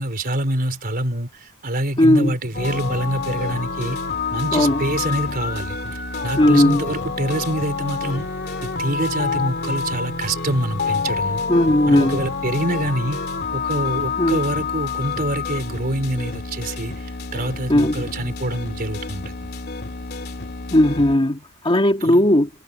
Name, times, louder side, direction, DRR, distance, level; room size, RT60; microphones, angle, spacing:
voice 1, 0.0-4.0 4.3-8.3 8.6-11.4 11.9-13.2 13.5-19.5 22.0-22.3, right 1 dB, 45° right, 3.9 m, -26 dB
voice 2, 2.0-2.3 4.5-4.8 6.4-6.8 11.5-12.2 14.2-14.4 17.7-18.1 20.7-22.5, left 1 dB, 25° left, 1.8 m, -17 dB
sound 1, 2.5-21.2, left 4 dB, 50° left, 2.7 m, -28 dB
head